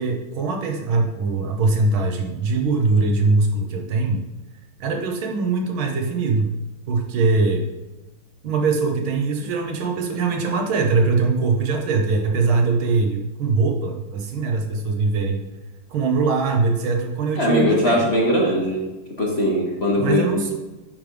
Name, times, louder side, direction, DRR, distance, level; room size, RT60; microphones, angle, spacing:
voice 1, 0.0-4.2 4.8-6.5 6.9-7.7 8.4-15.5 15.9-18.1 20.0-20.5, right 3 dB, 90° right, 3 dB, 1.9 m, -22 dB
voice 2, 17.4-18.8 19.2-20.5, left 1 dB, 35° left, -2 dB, 1.3 m, -20 dB
9.4 x 3.4 x 5.2 m, 1.1 s
omnidirectional pair, 2.2 m